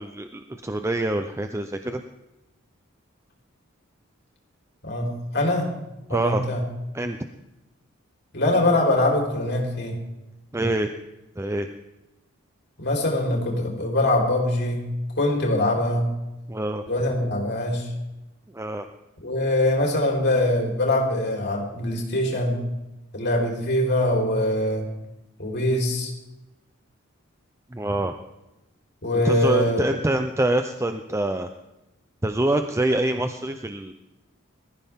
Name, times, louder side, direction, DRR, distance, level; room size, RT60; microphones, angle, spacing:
voice 1, 0.0-2.0 6.1-6.4 6.9-7.2 10.5-10.9 11.4-11.7 16.5-16.8 18.5-18.9 27.7-28.1 29.2-31.5 32.2-33.9, right 1 dB, 15° right, 7 dB, 0.6 m, -25 dB
voice 2, 5.3-5.7 6.1-6.6 8.3-10.0 12.8-14.8 15.2-16.1 16.9-17.9 19.2-22.6 23.1-24.8 25.4-26.1 29.0-30.0, left 1 dB, 55° left, -1 dB, 4.1 m, -23 dB
20.5 x 14.5 x 3.7 m, 0.97 s
head